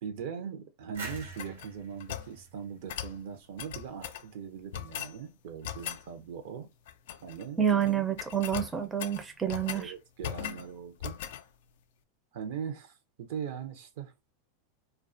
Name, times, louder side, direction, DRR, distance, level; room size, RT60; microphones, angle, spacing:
voice 1, 0.0-6.7 7.2-7.7 9.7-11.2 12.3-14.1, right 7 dB, 65° right, 0.6 m, -40 dB
sound 1, 0.9-3.7, right 3 dB, 90° right, 1.2 m, -46 dB
sound 2, 1.1-2.3 2.9-3.2 3.6-4.3 4.7-5.2 5.6-6.0 6.9-7.4 7.7-7.9 8.2-9.9 10.2-10.7 11.0-11.4, left 10 dB, 70° left, 0.3 m, -39 dB
voice 2, 7.6-9.9, right 9 dB, 20° right, 0.5 m, -28 dB
2.3 x 2.2 x 2.5 m
hypercardioid pair, 100°, 0 cm